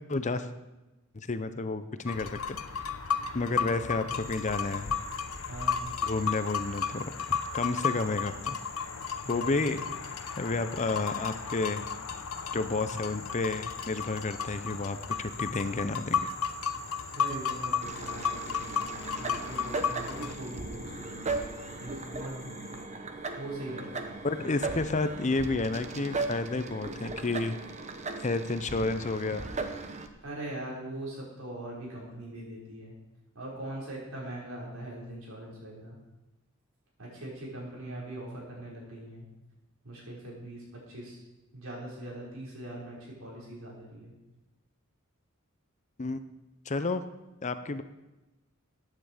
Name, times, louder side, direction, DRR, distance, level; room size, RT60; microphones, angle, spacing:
voice 1, 0.1-0.5 1.1-2.8 3.3-4.9 6.0-7.0 7.5-8.6 9.3-9.8 10.4-11.8 12.5-16.3 24.2-27.6 28.2-29.4 46.0-46.2 46.7-47.0 47.4-47.8, left 3 dB, 35° left, 11 dB, 0.7 m, -31 dB
sound 1, 2.1-20.4, left 6 dB, 85° left, 0.8 m, -34 dB
sound 2, 4.1-22.9, left 3 dB, 15° left, 1.6 m, -49 dB
voice 2, 5.5-5.9 9.1-9.7 17.1-22.8 23.4-24.0 30.2-32.9 33.3-36.0 37.0-39.2 39.8-41.2 41.5-44.1, right 1 dB, 75° right, -5 dB, 5.6 m, -41 dB
sound 3, 17.8-30.1, right 3 dB, 35° right, 1.0 m, -37 dB
15.0 x 9.6 x 5.0 m, 1.0 s
head